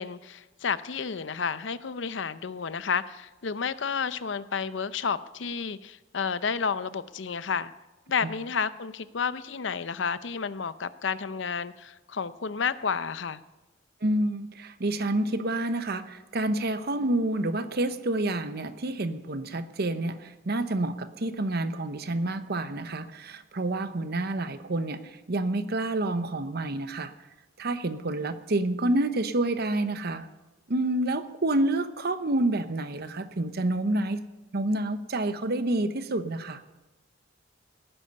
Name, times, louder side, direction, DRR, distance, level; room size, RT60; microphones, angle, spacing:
voice 1, 0.0-7.7 8.1-13.4, left 6 dB, 70° left, 14 dB, 0.6 m, -31 dB
voice 2, 14.0-27.1 27.6-30.3 30.7-34.2 34.5-36.6, right 2 dB, 55° right, 11 dB, 0.9 m, -28 dB
18.5 x 10.0 x 5.5 m, 1.1 s
head